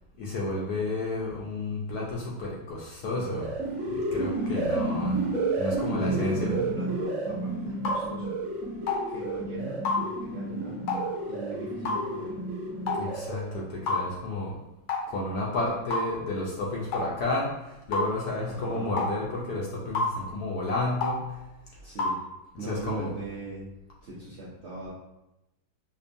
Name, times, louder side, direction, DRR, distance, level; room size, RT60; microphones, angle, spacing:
voice 1, 0.2-3.5 3.9-5.2 5.6-6.5 12.9-14.5 15.1-21.4 22.5-23.1, left 2 dB, 70° left, -4 dB, 0.9 m, -31 dB
sound 1, 3.0-13.6, right 2 dB, 55° right, 1.0 m, -31 dB
voice 2, 5.9-8.4 9.1-10.8 11.3-12.3 18.4-18.9 21.8-22.2 22.6-23.6 24.0-24.9, right 2 dB, 75° right, -8 dB, 0.6 m, -39 dB
sound 2, 7.9-8.0 8.9-9.0 9.9-10.0 10.9-11.1 11.9-12.0 12.9-13.1 13.9-14.0 14.9-15.1 15.9-16.1 16.9-17.1 17.9-18.1 19.0-19.1 20.0-20.1 21.0-21.2 22.0-22.2, left 3 dB, 85° left, 1.5 m, -27 dB
5.2 x 2.2 x 2.5 m, 0.93 s
omnidirectional pair, 2.1 m